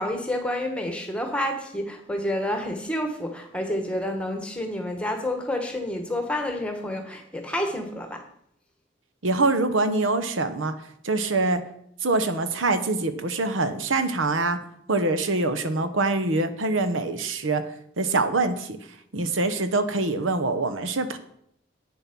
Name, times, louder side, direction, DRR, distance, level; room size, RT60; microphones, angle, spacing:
voice 1, 0.0-8.2, left 1 dB, 5° left, 4 dB, 1.2 m, -29 dB
voice 2, 9.2-10.7 11.0-11.6 12.0-14.6 14.9-17.6 18.0-18.8 19.1-21.2, right 3 dB, 85° right, 10 dB, 1.0 m, -24 dB
8.7 x 7.1 x 6.0 m, 0.71 s
head